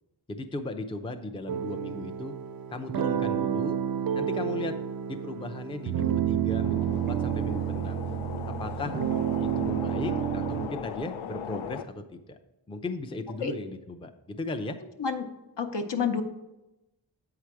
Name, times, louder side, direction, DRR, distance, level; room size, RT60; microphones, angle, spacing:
voice 1, 0.3-2.4 2.7-3.8 4.1-4.8 5.1-8.0 8.5-9.0 9.4-12.4 12.7-14.8, left 2 dB, 10° left, 6 dB, 0.5 m, -36 dB
sound 1, 1.5-10.7, right 10 dB, 50° right, 0.5 m, -30 dB
sound 2, 6.6-11.8, left 8 dB, 90° left, 0.5 m, -38 dB
voice 2, 15.6-16.2, left 6 dB, 60° left, 5 dB, 0.9 m, -28 dB
8.3 x 4.8 x 4.6 m, 0.95 s
cardioid pair, 70°, 47 cm